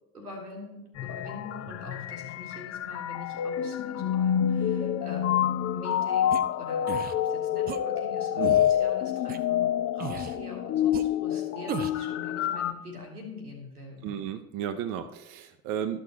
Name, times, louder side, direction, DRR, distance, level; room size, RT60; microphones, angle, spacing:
voice 1, 0.1-14.2, left 3 dB, 85° right, 1 dB, 1.7 m, -44 dB
sound 1, 1.0-12.7, left 10 dB, 35° left, 0.6 m, -28 dB
sound 2, 6.3-6.4 6.9-7.1 7.7-7.8 8.4-8.7 9.3-9.4 10.0-10.4 10.9-11.0 11.7-12.0, right 10 dB, 25° right, 0.4 m, -35 dB
voice 2, 14.0-16.0, right 9 dB, 50° right, 9 dB, 0.7 m, -34 dB
13.0 x 6.2 x 3.0 m, 0.86 s
figure-of-eight pair, 55°, 45 cm